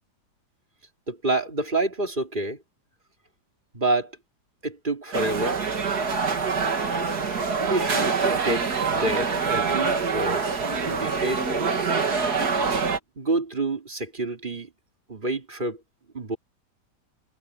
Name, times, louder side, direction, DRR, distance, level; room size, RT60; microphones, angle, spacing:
voice 1, 1.1-2.6 3.7-4.1 4.6-5.6 7.6-10.5 10.9-11.9 13.2-14.7 15.1-15.8 16.1-16.4, right 2 dB, 25° right, 2.9 m, -28 dB
sound 1, 5.1-13.0, right 5 dB, 65° right, 2.6 m, -25 dB
omnidirectional pair, 1.9 m